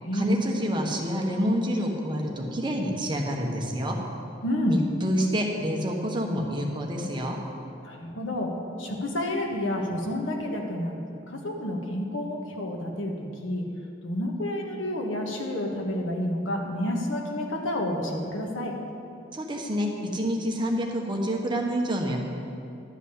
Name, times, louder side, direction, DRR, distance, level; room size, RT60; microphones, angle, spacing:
voice 1, 0.1-4.0 4.7-7.4 19.3-22.2, equal, 25° right, 0 dB, 1.1 m, -28 dB
voice 2, 4.4-4.8 7.8-8.5 8.8-13.6 14.0-18.7, left 1 dB, 90° left, 1 dB, 1.4 m, -29 dB
11.5 x 5.2 x 8.4 m, 2.6 s
head